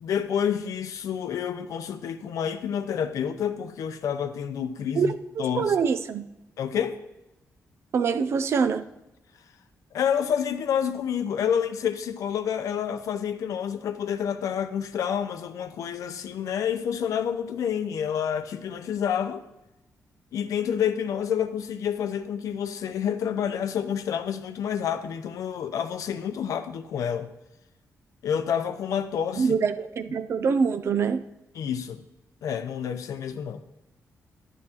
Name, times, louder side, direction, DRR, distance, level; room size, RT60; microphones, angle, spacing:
voice 1, 0.0-5.1 5.4-5.7 6.6-7.0 9.9-19.4 20.3-27.3 28.2-29.5 31.6-32.0 32.4-33.6, left 8 dB, 75° left, 9 dB, 0.7 m, -28 dB
voice 2, 5.0-6.3 7.9-8.8 29.4-31.2, right 6 dB, 50° right, 11 dB, 0.5 m, -25 dB
11.0 x 9.7 x 2.9 m, 0.93 s
wide cardioid pair, 180°, 6 cm